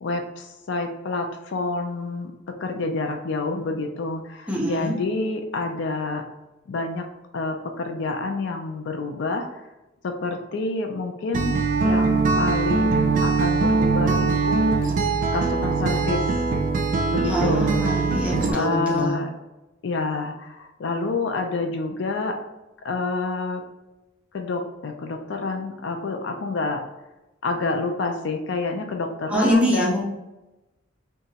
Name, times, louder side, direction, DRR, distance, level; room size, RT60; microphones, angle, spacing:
voice 1, 0.0-6.2 6.7-7.1 7.3-9.5 10.0-14.7 15.3-16.2 17.1-17.8 18.5-19.3 19.8-22.4 22.8-23.6 24.3-26.8 27.4-30.0, left 3 dB, 65° left, 4 dB, 0.4 m, -28 dB
voice 2, 4.5-5.0 17.2-19.2 29.3-30.0, equal, 5° right, -4 dB, 0.6 m, -24 dB
Acoustic guitar, 11.3-18.5, right 4 dB, 45° right, 0.3 m, -22 dB
2.9 x 2.3 x 2.7 m, 0.99 s
head